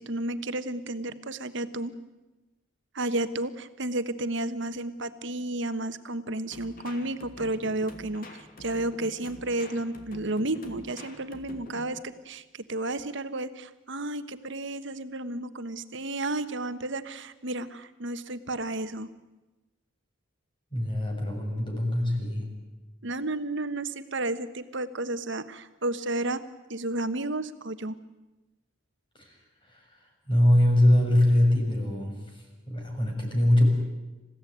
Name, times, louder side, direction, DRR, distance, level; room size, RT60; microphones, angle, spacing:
voice 1, 0.0-1.9 2.9-19.1 23.0-26.4 26.7-28.0, right 2 dB, 65° right, 11 dB, 1.3 m, -32 dB
sound 1, 6.5-12.0, left 1 dB, 45° left, 2.7 m, -46 dB
voice 2, 20.7-22.5 29.1-29.4 29.6-29.9 30.3-33.7, left 1 dB, 25° left, 1 dB, 6.8 m, -23 dB
28.0 x 16.0 x 9.4 m, 1.1 s
head